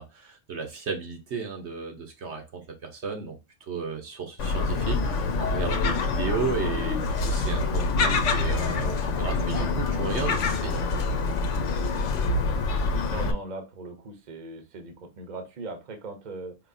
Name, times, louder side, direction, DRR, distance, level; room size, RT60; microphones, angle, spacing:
voice 1, 0.0-3.4 3.7-10.8, right 5 dB, 65° right, 1.1 m, -34 dB
Gull seagull, 4.4-13.3, left 3 dB, 75° left, 1.0 m, -26 dB
sound 1, 7.0-12.3, left 6 dB, 55° left, 0.5 m, -39 dB
voice 2, 13.1-16.6, right 3 dB, 40° right, 0.9 m, -39 dB
4.8 x 3.0 x 2.6 m
omnidirectional pair, 1.3 m